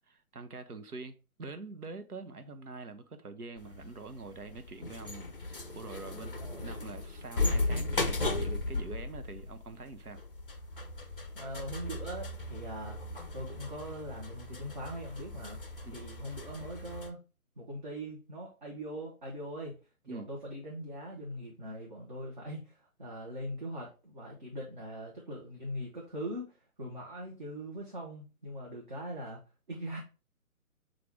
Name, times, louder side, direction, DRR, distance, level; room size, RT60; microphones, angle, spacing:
voice 1, 0.1-10.2 15.8-16.0 20.1-20.3, right 3 dB, 85° right, 0.7 m, -45 dB
sound 1, 3.6-17.1, left 2 dB, 40° left, 0.5 m, -36 dB
voice 2, 6.4-6.8 11.3-13.0 13.3-15.6 15.9-17.2 17.6-29.4 29.7-30.0, equal, 35° right, 1.0 m, -41 dB
5.9 x 2.5 x 3.3 m
figure-of-eight pair, 145°, 44 cm